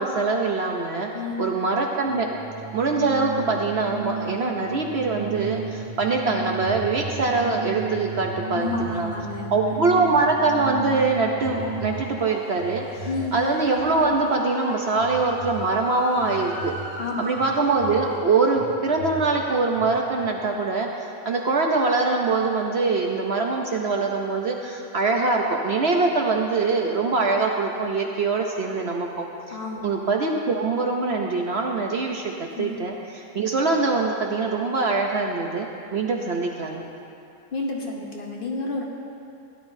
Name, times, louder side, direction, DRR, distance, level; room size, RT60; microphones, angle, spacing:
voice 1, 0.0-1.1 1.4-2.3 2.7-9.1 9.5-16.7 17.2-29.6 29.8-36.9, right 3 dB, 55° right, 1 dB, 0.8 m, -23 dB
voice 2, 1.1-1.5 8.4-10.0 13.0-13.3 17.0-17.2 29.5-29.8 32.6-32.9 37.5-38.8, left 3 dB, 40° left, -2 dB, 1.2 m, -31 dB
Organ, 1.9-12.2, right 4 dB, 25° right, 1.0 m, -34 dB
sound 1, 5.3-6.2 6.5-9.6 10.1-11.0 11.3-14.4 14.9-20.2, right 3 dB, 75° right, 3.7 m, -40 dB
sound 2, 11.4-18.2, left 1 dB, 70° left, 2.0 m, -38 dB
16.5 x 11.0 x 2.7 m, 2.7 s
omnidirectional pair, 1.5 m